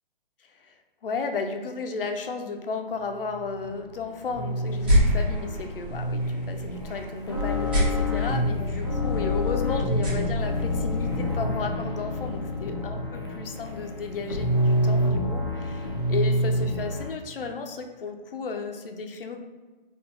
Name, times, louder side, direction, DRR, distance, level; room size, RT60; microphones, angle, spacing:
voice 1, 0.5-19.4, left 4 dB, 70° left, 5 dB, 0.6 m, -34 dB
sound 1, 3.3-17.1, left 1 dB, 30° left, 0.4 m, -28 dB
sound 2, 4.7-11.3, equal, 10° right, 0.7 m, -29 dB
3.9 x 2.9 x 3.3 m, 1.3 s
hypercardioid pair, 180°, 29 cm